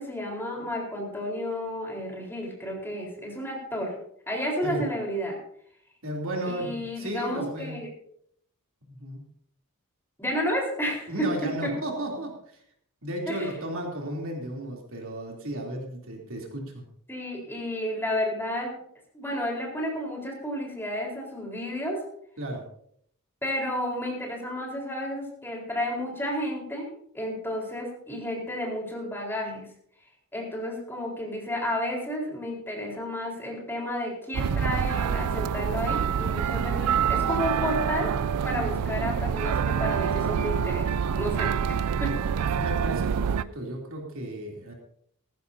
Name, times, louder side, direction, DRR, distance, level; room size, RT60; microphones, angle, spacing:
voice 1, 0.0-3.9 4.3-5.4 6.4-7.9 10.2-11.3 11.6-11.7 13.3-13.5 17.1-18.8 19.1-22.0 23.4-29.7 30.3-38.1 38.4-40.9 41.1-42.1, equal, 10° left, -1 dB, 4.2 m, -31 dB
voice 2, 6.0-7.8 8.8-9.2 11.1-12.6 13.0-16.8 22.4-22.6 42.5-44.7, right 1 dB, 65° right, 0 dB, 3.2 m, -34 dB
sound 1, 34.3-43.4, right 7 dB, 90° right, 0.4 m, -26 dB
18.0 x 14.5 x 2.8 m, 0.66 s
head